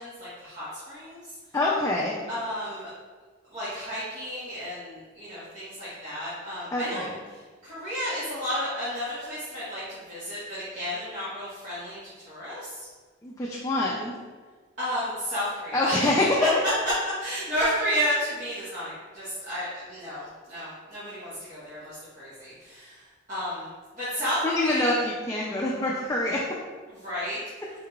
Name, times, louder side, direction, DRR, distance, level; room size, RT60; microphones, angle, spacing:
voice 1, 0.0-1.3 2.3-2.9 3.5-7.0 7.3-12.8 14.8-16.1 16.4-16.7 17.2-23.7 23.9-25.0 26.9-27.4, equal, 40° right, -12 dB, 1.4 m, -32 dB
voice 2, 1.5-2.2 6.7-7.2 13.2-14.2 15.7-16.3 24.4-26.4, left 2 dB, 15° left, -4 dB, 0.4 m, -26 dB
4.8 x 4.5 x 2.4 m, 1.4 s
head